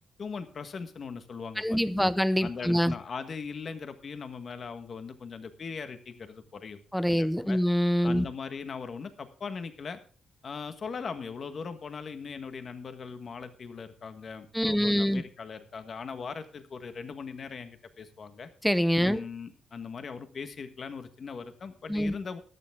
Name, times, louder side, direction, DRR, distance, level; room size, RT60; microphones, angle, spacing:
voice 1, 0.2-2.1 2.4-6.8 7.1-7.6 8.0-10.0 10.4-18.5 19.0-22.4, left 5 dB, 40° left, 1.4 m, -40 dB
voice 2, 1.6-2.9 6.9-8.3 14.5-15.2 18.6-19.2 21.9-22.1, equal, ahead, 0.7 m, -25 dB
13.5 x 12.0 x 3.6 m
cardioid pair, 140°, 0 cm